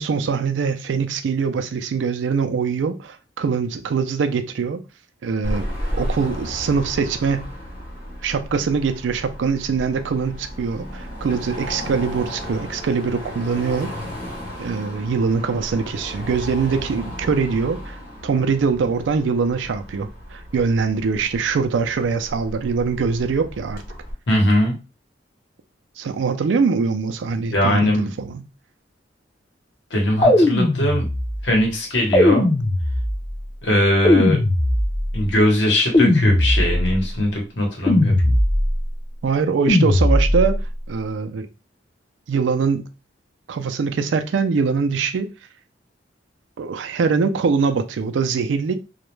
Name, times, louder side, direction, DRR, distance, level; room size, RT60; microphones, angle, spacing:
voice 1, 0.0-4.8 5.2-7.5 8.2-13.9 14.6-18.0 18.2-23.8 26.0-28.4 39.2-40.6 40.9-41.5 42.3-42.9 43.5-45.3 46.6-48.7, right 5 dB, 80° right, 0.4 m, -23 dB
Car passing by / Traffic noise roadway noise / Engine, 5.4-24.1, equal, 50° left, 0.9 m, -34 dB
voice 2, 24.3-24.8 27.5-28.1 29.9-31.1 31.4-32.5 33.6-34.4 35.1-38.3, left 1 dB, 75° left, 0.9 m, -20 dB
sound 1, 30.2-31.4 32.1-33.3 34.0-35.2 35.9-37.0 37.9-38.8 39.7-40.6, left 1 dB, 30° left, 0.4 m, -18 dB
2.3 x 2.1 x 3.0 m
head